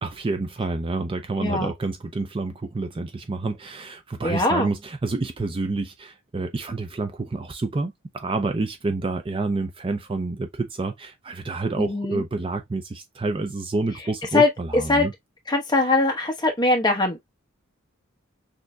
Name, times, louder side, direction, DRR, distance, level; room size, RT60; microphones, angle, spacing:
voice 1, 0.0-15.1, right 3 dB, 25° right, 0.4 m, -28 dB
voice 2, 4.2-4.7 11.8-12.2 14.3-14.5 14.9-15.1 15.5-17.3, left 2 dB, 20° left, 1.1 m, -21 dB
6.3 x 2.7 x 2.2 m
head